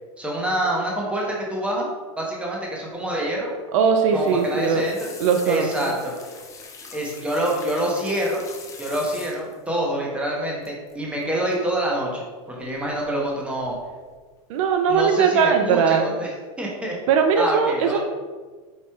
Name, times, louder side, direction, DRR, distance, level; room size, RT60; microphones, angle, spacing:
voice 1, 0.2-1.9 2.2-3.5 4.1-5.1 5.5-6.1 6.9-8.4 8.8-13.8 14.9-16.3 16.6-17.0 17.4-18.0, right 1 dB, 5° right, -3 dB, 0.8 m, -26 dB
voice 2, 3.7-4.8 5.2-5.9 14.5-16.1 17.1-18.0, right 6 dB, 65° right, 6 dB, 0.4 m, -20 dB
sound 1, 4.1-9.7 10.6-10.9 11.2-11.5 12.7-13.3 13.6-14.2 14.6-15.0 15.4-15.5, left 4 dB, 15° left, 0.5 m, -43 dB
4.6 x 4.0 x 2.3 m, 1.4 s
supercardioid pair, 130°, 18 cm